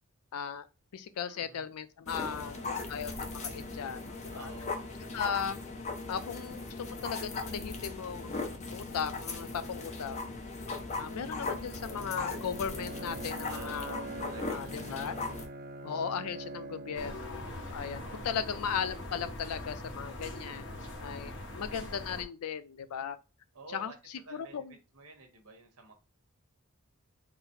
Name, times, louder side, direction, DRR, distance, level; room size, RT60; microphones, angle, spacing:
voice 1, 0.3-0.7 0.9-4.5 5.1-5.6 6.1-10.3 10.9-14.1 14.5-15.1 15.8-23.2 23.7-24.7, left 7 dB, 80° left, 0.4 m, -37 dB
voice 2, 1.2-1.6 2.2-3.0 4.3-4.8 9.5-9.8 13.4-15.1 18.0-18.4 20.5-20.9 23.5-23.9 24.2-24.6 24.9-25.9, right 4 dB, 80° right, 1.0 m, -51 dB
sound 1, 2.1-15.5, left 3 dB, 30° left, 0.6 m, -38 dB
Bowed string instrument, 10.7-18.5, right 2 dB, 45° right, 0.5 m, -45 dB
sound 2, 16.9-22.2, left 1 dB, 60° left, 1.0 m, -42 dB
4.0 x 2.0 x 4.1 m
head